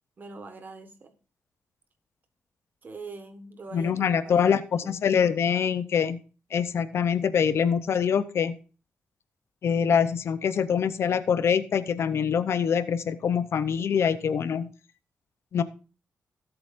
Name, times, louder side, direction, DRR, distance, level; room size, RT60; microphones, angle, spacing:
voice 1, 0.2-1.1 2.8-4.5 4.8-5.0, right 3 dB, 40° right, 8 dB, 1.5 m, -43 dB
voice 2, 3.7-6.2 6.5-8.6 9.6-14.7 15.5-15.6, left 7 dB, 65° left, 14 dB, 0.7 m, -24 dB
17.0 x 8.0 x 2.6 m, 0.35 s
wide cardioid pair, 130°, 5 cm